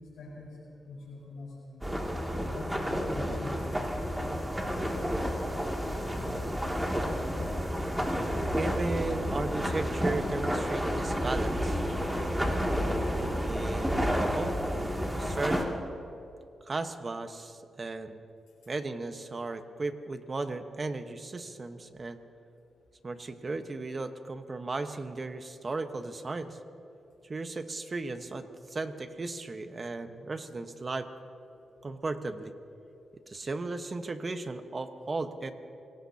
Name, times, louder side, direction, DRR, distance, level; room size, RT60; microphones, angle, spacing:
voice 1, 0.2-1.9 2.5-4.0, left 2 dB, 90° left, -5 dB, 5.1 m, -44 dB
sound 1, 1.8-15.6, equal, 10° right, 2.5 m, -30 dB
voice 2, 8.6-11.8 13.4-14.6 15.1-15.6 16.6-18.2 18.7-22.2 23.0-26.6 27.3-31.1 31.8-32.5 33.3-35.5, right 3 dB, 40° right, 8 dB, 1.2 m, -35 dB
27.5 x 18.5 x 2.9 m, 2.7 s
cardioid pair, 65°, 0 cm